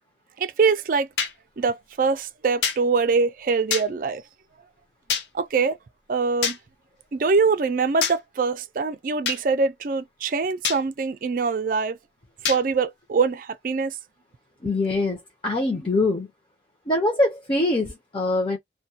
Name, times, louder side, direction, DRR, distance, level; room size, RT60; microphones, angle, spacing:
voice 1, 0.4-1.1 1.6-4.2 5.3-5.8 6.1-6.6 7.1-12.0 12.4-14.0, right 4 dB, 50° right, 0.4 m, -23 dB
sound 1, 1.2-1.3 2.6-2.8 3.7-3.9 5.1-5.3 6.4-6.6 8.0-8.2 9.3-9.4 10.6-10.8 12.5-12.6, left 7 dB, 70° left, 0.5 m, -25 dB
voice 2, 14.6-16.3 16.9-18.6, left 2 dB, 30° left, 0.7 m, -23 dB
2.2 x 2.2 x 2.7 m
head